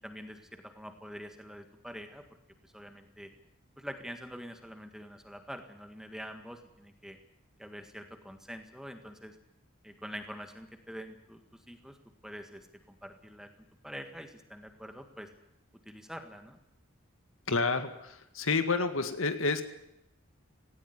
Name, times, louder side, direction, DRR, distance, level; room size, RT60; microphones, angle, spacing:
voice 1, 0.0-2.2 2.6-3.3 3.8-7.2 7.6-9.3 9.8-12.0 12.2-13.5 13.8-15.3 15.8-16.6, equal, ahead, 6 dB, 1.8 m, -45 dB
voice 2, 17.5-19.6, left 4 dB, 70° left, 9 dB, 2.0 m, -29 dB
18.0 x 17.5 x 9.7 m, 0.83 s
head